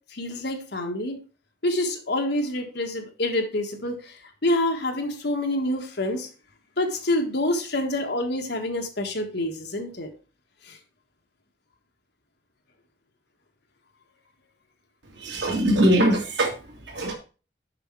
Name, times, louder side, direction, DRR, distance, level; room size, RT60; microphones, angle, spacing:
voice 1, 0.1-1.2 1.6-6.3 6.8-10.1 10.7-10.8, left 1 dB, 65° left, 4 dB, 1.5 m, -27 dB
voice 2, 15.2-16.5 16.9-17.1, right 1 dB, 80° right, 1 dB, 2.3 m, -21 dB
6.8 x 5.9 x 4.6 m, 0.35 s
head